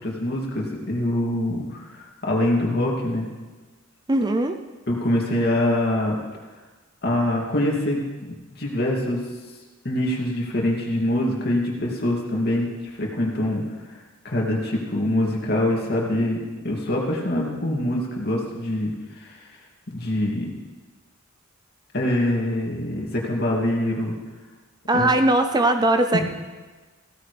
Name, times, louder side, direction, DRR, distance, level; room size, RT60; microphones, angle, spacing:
voice 1, 0.0-3.3 4.9-6.2 7.0-8.0 8.6-9.2 9.8-13.6 14.2-19.4 19.9-20.5 21.9-24.1 24.9-25.1 26.1-26.2, left 1 dB, 50° left, -2 dB, 2.6 m, -24 dB
voice 2, 4.1-4.6 24.9-26.2, right 1 dB, 20° right, 7 dB, 0.5 m, -20 dB
16.5 x 14.0 x 3.4 m, 1.3 s
head